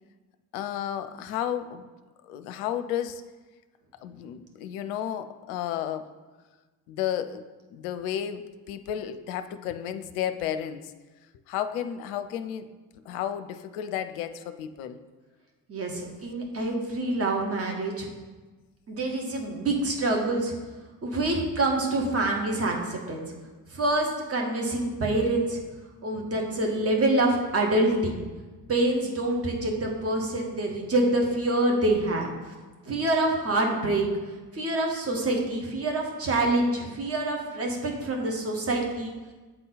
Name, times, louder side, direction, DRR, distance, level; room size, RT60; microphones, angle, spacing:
voice 1, 0.5-1.9 2.2-3.2 4.0-6.1 6.9-7.4 7.7-10.9 11.5-12.7 13.1-15.0, left 10 dB, 60° left, 10 dB, 0.6 m, -32 dB
voice 2, 15.7-18.1 18.9-20.5 21.0-23.2 23.7-25.6 26.0-28.2 28.7-32.3 32.8-34.1 34.5-39.1, right 2 dB, 30° right, 1 dB, 1.4 m, -26 dB
7.8 x 3.8 x 4.0 m, 1.3 s
figure-of-eight pair, 45°, 48 cm